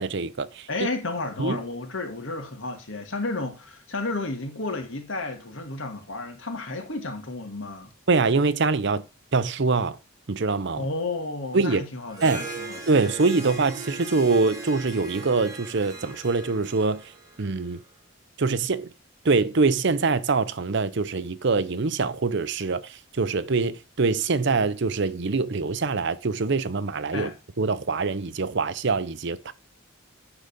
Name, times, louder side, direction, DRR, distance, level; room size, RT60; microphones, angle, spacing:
voice 1, 0.0-0.9 1.4-1.6 8.1-9.0 9.3-10.0 10.3-10.9 11.5-11.8 12.2-12.4 12.9-17.0 17.4-17.8 18.4-18.9 19.2-27.3 27.6-29.5, right 4 dB, 55° right, 0.7 m, -24 dB
voice 2, 0.7-7.9 10.8-12.8 27.1-27.3, left 2 dB, 65° left, 2.0 m, -32 dB
Harp, 12.1-17.8, right 2 dB, 15° right, 2.3 m, -39 dB
10.0 x 4.0 x 6.7 m
head